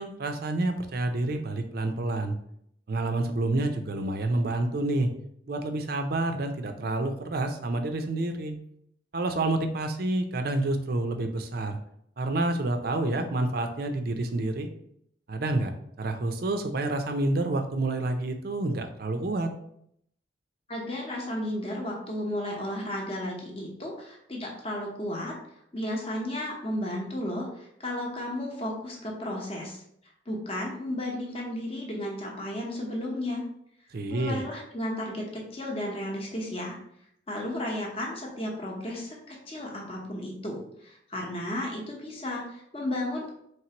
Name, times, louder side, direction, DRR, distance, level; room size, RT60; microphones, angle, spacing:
voice 1, 0.0-2.4 2.9-5.1 5.5-8.6 9.1-11.8 12.2-14.7 15.3-19.5 33.9-34.4, right 2 dB, 50° right, 6 dB, 0.5 m, -28 dB
voice 2, 20.7-25.3 25.7-29.8 30.3-33.4 34.1-36.8 37.3-43.3, left 1 dB, 30° left, -1 dB, 0.9 m, -33 dB
4.4 x 3.2 x 2.9 m, 0.72 s
head